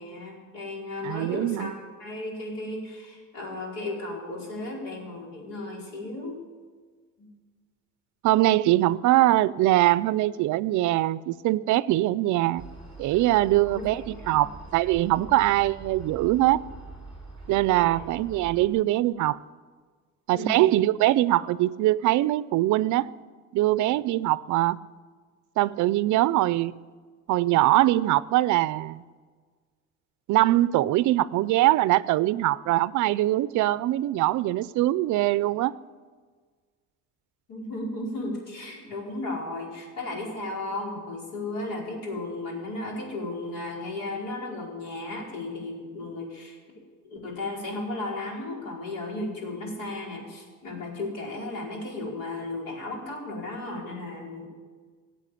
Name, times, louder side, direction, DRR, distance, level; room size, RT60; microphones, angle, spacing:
voice 1, 0.0-1.7 2.0-6.4 7.2-7.3 13.6-14.5 15.2-15.3 17.7-18.1 20.3-20.6 37.5-46.6 47.0-54.5, left 2 dB, 75° left, 4.9 m, -35 dB
voice 2, 1.0-1.7 8.2-12.6 13.0-16.7 17.5-19.4 20.3-23.1 23.5-24.8 25.6-26.8 27.3-29.0 30.3-35.8, right 16 dB, 60° right, 0.5 m, -22 dB
sound 1, 12.6-18.7, right 3 dB, 15° left, 4.0 m, -44 dB
18.5 x 8.1 x 8.4 m
cardioid pair, 165°, 33 cm